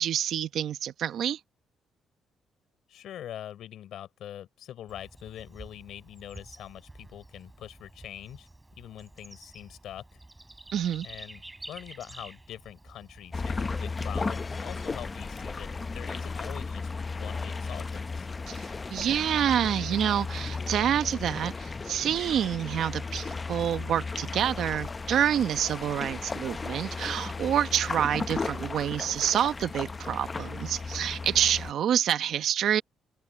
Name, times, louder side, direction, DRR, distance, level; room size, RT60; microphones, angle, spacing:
voice 1, 0.0-1.4 10.7-11.1 18.5-18.6 18.9-32.8, right 10 dB, 70° right, 1.1 m, -27 dB
voice 2, 2.9-8.5 8.8-10.2 11.0-11.4 11.7-18.3, left 11 dB, 75° left, 3.7 m, -44 dB
Bird / Insect, 4.9-13.4, right 2 dB, 15° right, 5.3 m, -49 dB
sound 1, 13.3-31.7, left 4 dB, 30° left, 0.7 m, -35 dB
cardioid pair, 90°, 0 cm